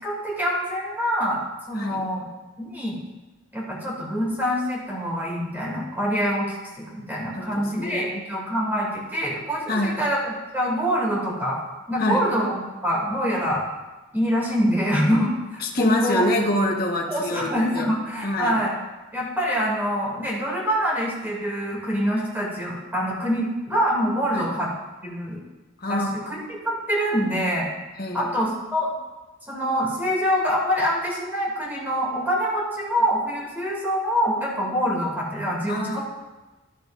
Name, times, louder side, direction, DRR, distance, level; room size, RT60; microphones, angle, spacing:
voice 1, 0.0-1.4 1.7-2.2 2.6-3.0 3.5-10.2 10.5-11.6 11.9-13.6 14.1-16.3 17.1-18.7 19.1-24.7 25.0-25.4 25.9-27.7 28.1-28.9 29.5-36.0, equal, 10° right, -4 dB, 2.6 m, -25 dB
voice 2, 7.3-8.2 9.7-10.0 12.0-12.3 15.6-17.9 18.2-18.6 24.3-24.5 25.8-26.2 28.0-28.4 35.7-36.0, left 1 dB, 50° left, 0 dB, 1.3 m, -26 dB
12.0 x 10.0 x 2.6 m, 1.1 s
head